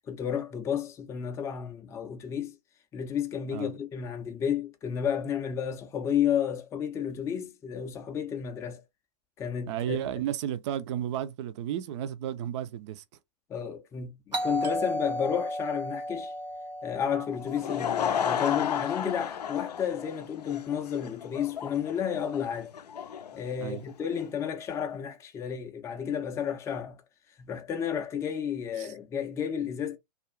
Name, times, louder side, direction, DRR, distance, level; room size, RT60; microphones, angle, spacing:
voice 1, 0.1-2.6 2.9-8.8 9.4-10.0 13.5-16.3 16.8-22.7 23.3-27.0 27.4-30.0, left 8 dB, 15° left, 0.4 m, -32 dB
voice 2, 9.7-13.0 23.6-23.8 28.8-28.9, right 11 dB, 45° right, 0.4 m, -33 dB
Doorbell, 14.3-18.9, equal, 90° right, 0.8 m, -34 dB
Laughter / Crowd, 17.3-24.3, left 8 dB, 75° left, 0.4 m, -33 dB
2.4 x 2.3 x 3.0 m
figure-of-eight pair, 100°, 21 cm